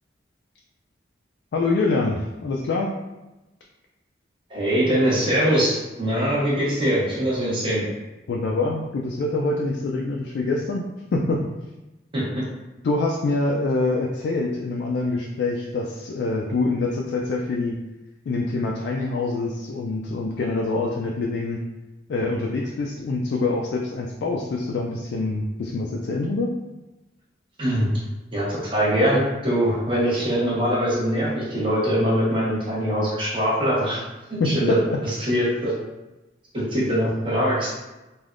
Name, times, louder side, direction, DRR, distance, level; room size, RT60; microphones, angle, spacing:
voice 1, 1.5-2.9 8.3-10.9 11.1-11.4 12.8-17.8 18.3-21.6 22.1-26.5 34.4-35.0, left 3 dB, 75° left, 0 dB, 0.3 m, -25 dB
voice 2, 4.5-7.8 12.1-12.2 27.6-27.9 28.3-34.0 34.4-34.8 35.0-35.7 36.5-37.8, equal, 30° right, -7 dB, 1.0 m, -22 dB
3.3 x 2.2 x 2.4 m, 1.0 s
head